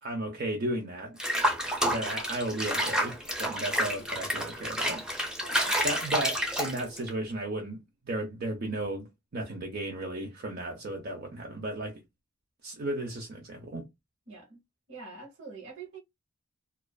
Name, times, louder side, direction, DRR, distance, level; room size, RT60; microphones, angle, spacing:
voice 1, 0.0-1.2 1.9-5.0 5.8-9.1 9.3-12.0 12.6-13.9, right 1 dB, 50° right, 0.5 m, -34 dB
Water / Bathtub (filling or washing), 1.2-7.1, equal, 5° right, 0.5 m, -29 dB
voice 2, 5.4-5.8 14.3-14.6 14.9-16.0, right 4 dB, 70° right, 0.9 m, -45 dB
2.4 x 2.3 x 2.2 m
head